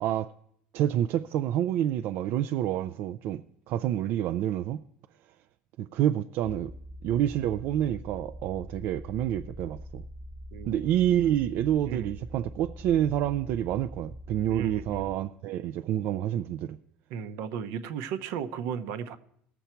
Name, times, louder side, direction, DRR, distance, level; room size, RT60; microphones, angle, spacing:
voice 1, 0.0-0.3 0.7-3.4 3.7-4.8 5.8-6.7 7.0-10.0 10.7-16.8, right 11 dB, 60° right, 0.4 m, -28 dB
sound 1, 6.4-15.2, equal, 5° right, 0.8 m, -44 dB
voice 2, 11.8-12.1 14.5-15.1 17.1-19.2, right 7 dB, 75° right, 0.8 m, -35 dB
18.5 x 7.1 x 4.4 m
cardioid pair, 135°, 4 cm